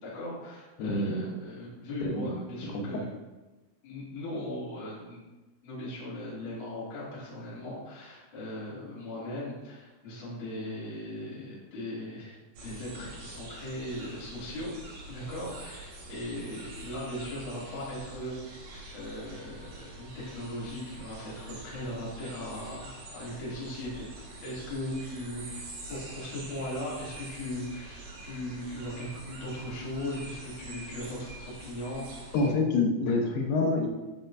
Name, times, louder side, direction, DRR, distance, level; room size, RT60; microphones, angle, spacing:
voice 1, 0.0-3.1 3.8-5.3 5.6-14.7 15.1-24.1 24.4-32.1, left 1 dB, 40° left, -8 dB, 2.0 m, -38 dB
voice 2, 0.8-1.3 2.0-2.3 2.7-2.8 32.3-33.9, left 3 dB, 80° left, 1 dB, 2.3 m, -27 dB
sound 1, 12.6-32.5, right 2 dB, 65° right, 2.6 m, -45 dB
10.5 x 5.1 x 2.6 m, 1.2 s
omnidirectional pair, 5.8 m